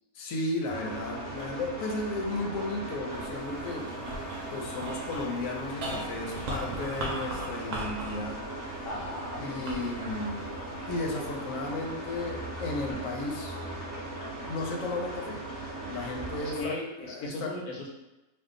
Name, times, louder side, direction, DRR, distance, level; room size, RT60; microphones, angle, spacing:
voice 1, 0.1-4.1 4.5-8.5 8.8-8.9 9.4-10.5 10.9-13.6 14.5-15.4 15.9-17.6, left 2 dB, 70° left, 1 dB, 1.0 m, -34 dB
sound 1, 0.7-16.6, right 1 dB, 15° right, 0.7 m, -38 dB
sound 2, 3.1-11.6 12.2-12.9, right 1 dB, 65° right, 0.9 m, -40 dB
voice 2, 8.8-9.4 16.4-17.9, left 2 dB, 90° left, -1 dB, 1.1 m, -37 dB
2.7 x 2.3 x 3.7 m, 1.0 s
omnidirectional pair, 1.5 m